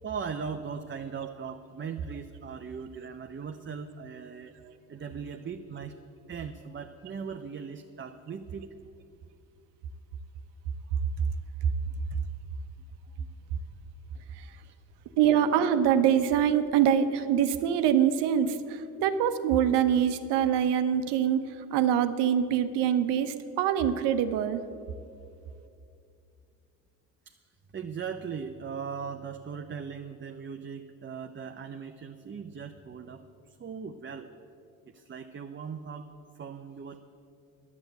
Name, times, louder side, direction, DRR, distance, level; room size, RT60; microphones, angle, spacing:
voice 1, 0.0-4.5 4.9-5.9 6.3-8.7 10.8-10.9 11.9-12.0 13.2-13.3 14.7-14.8 27.3-27.4 27.7-33.2 33.5-34.3 34.9-36.1 36.4-37.0, right 6 dB, 25° right, 5 dB, 0.7 m, -39 dB
voice 2, 15.2-21.5 21.7-24.6, right 9 dB, 70° right, 10 dB, 0.9 m, -24 dB
10.5 x 8.5 x 8.0 m, 2.5 s
hypercardioid pair, 55°, 42 cm